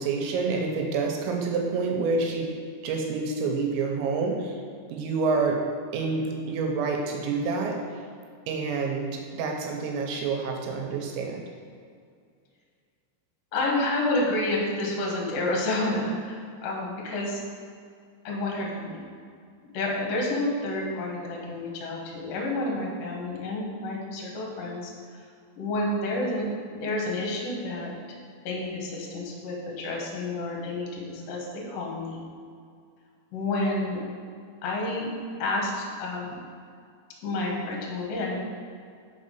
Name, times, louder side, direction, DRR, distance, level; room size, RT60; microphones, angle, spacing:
voice 1, 0.0-2.5 2.8-4.6 4.9-5.6 5.9-7.8 8.5-11.4, right 4 dB, 80° right, 1 dB, 2.9 m, -28 dB
voice 2, 13.5-17.4 18.2-19.0 19.7-25.2 25.6-27.9 28.4-32.2 33.3-34.0 34.6-35.1 35.4-36.4 37.2-38.4, left 2 dB, 70° left, -2 dB, 2.3 m, -29 dB
5.7 x 5.4 x 5.3 m, 2.2 s
omnidirectional pair, 5.4 m